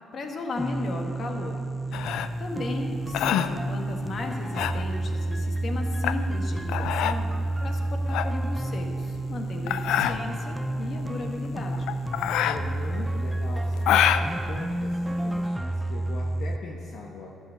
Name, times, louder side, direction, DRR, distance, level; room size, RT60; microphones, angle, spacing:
voice 1, 0.1-1.6 1.9-7.3 7.6-11.9, left 2 dB, 50° left, 3 dB, 1.5 m, -35 dB
sound 1, 0.6-16.6, right 1 dB, 10° right, 0.5 m, -30 dB
sound 2, 1.9-15.5, left 10 dB, 90° left, 0.4 m, -28 dB
sound 3, 2.5-11.5, equal, 85° right, 1.1 m, -47 dB
voice 2, 12.4-17.3, left 3 dB, 65° left, -1 dB, 1.1 m, -40 dB
12.0 x 7.8 x 6.9 m, 2.4 s
cardioid pair, 90°, 0 cm